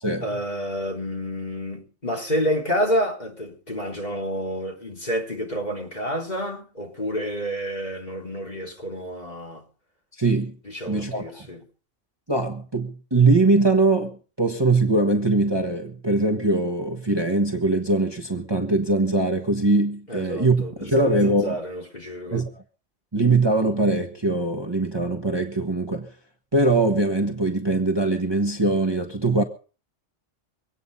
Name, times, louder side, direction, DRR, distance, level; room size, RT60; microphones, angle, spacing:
voice 1, 0.2-9.6 10.6-11.6 20.1-22.4, equal, 35° left, 3.8 m, -29 dB
voice 2, 10.2-10.6 10.9-11.5 12.3-21.6 22.3-22.5 23.1-26.1 26.5-29.4, right 2 dB, 20° right, 1.5 m, -22 dB
24.0 x 9.3 x 5.5 m
omnidirectional pair, 1.3 m